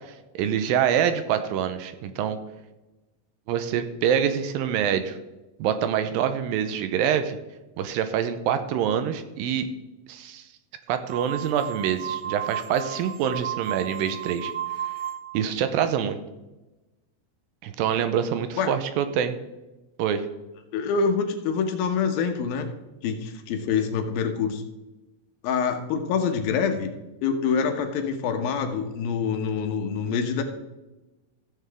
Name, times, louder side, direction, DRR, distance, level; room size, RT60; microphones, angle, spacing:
voice 1, 0.4-2.4 3.5-5.2 5.6-7.4 7.8-9.7 10.1-10.4 10.9-14.5 15.3-16.2 17.6-19.4 20.0-20.3, right 8 dB, 85° right, 10 dB, 2.4 m, -25 dB
sound 1, 11.1-15.5, right 10 dB, 70° right, 1.6 m, -33 dB
voice 2, 20.7-22.7 23.0-24.6 25.4-26.9 27.2-30.4, left 6 dB, 80° left, 5 dB, 2.8 m, -26 dB
15.0 x 7.5 x 3.5 m, 1.0 s
omnidirectional pair, 4.2 m